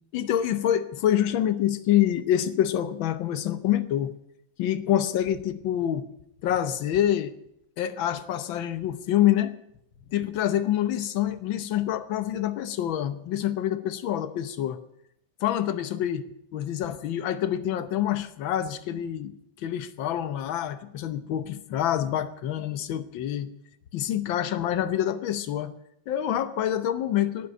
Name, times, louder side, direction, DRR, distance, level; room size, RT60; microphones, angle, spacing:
voice 1, 0.1-4.1 4.6-6.1 6.4-7.3 7.8-9.5 10.1-14.8 15.4-16.3 16.5-23.5 23.9-25.7 26.1-27.5, left 11 dB, 75° left, 12 dB, 1.7 m, -26 dB
11.0 x 11.0 x 10.0 m, 0.77 s
omnidirectional pair, 2.2 m